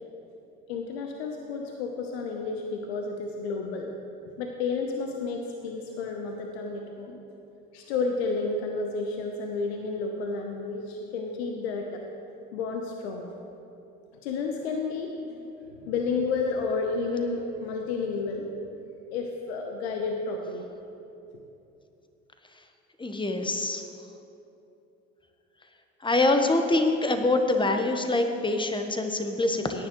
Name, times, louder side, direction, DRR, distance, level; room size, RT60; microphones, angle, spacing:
voice 1, 0.7-3.9 4.4-7.2 7.7-12.0 12.5-13.3 14.2-15.5 15.8-18.5 19.1-20.7 21.3-21.4, left 4 dB, 80° left, 2 dB, 0.9 m, -31 dB
voice 2, 23.0-23.8 26.0-29.9, left 2 dB, 15° left, 5 dB, 1.2 m, -25 dB
17.5 x 9.7 x 3.1 m, 2.8 s
hypercardioid pair, 65°, 32 cm